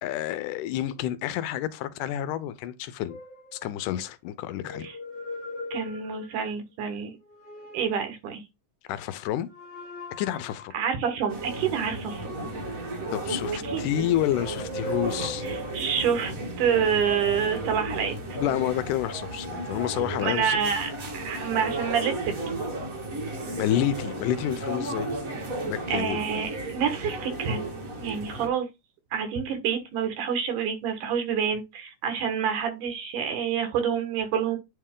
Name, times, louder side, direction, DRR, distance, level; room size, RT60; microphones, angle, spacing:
voice 1, 0.0-3.2 3.5-4.9 8.9-9.5 10.2-10.7 13.1-15.5 18.4-20.6 23.5-25.1 25.6-26.2, left 12 dB, 85° left, 2.2 m, -29 dB
sound 1, 3.1-4.0 4.5-6.5 7.1-8.1 9.4-10.8 12.0-13.7 14.2-15.9 16.5-18.1 19.0-20.8 21.4-21.9, equal, 35° left, 0.9 m, -41 dB
voice 2, 5.7-7.1 7.7-8.4 10.7-12.3 13.6-13.9 15.4-18.2 20.2-22.5 25.9-27.6 28.0-28.7 29.1-34.6, right 7 dB, 75° right, 2.9 m, -28 dB
sound 2, 11.3-28.5, right 2 dB, 35° right, 1.4 m, -34 dB
9.2 x 3.2 x 3.7 m
omnidirectional pair, 3.7 m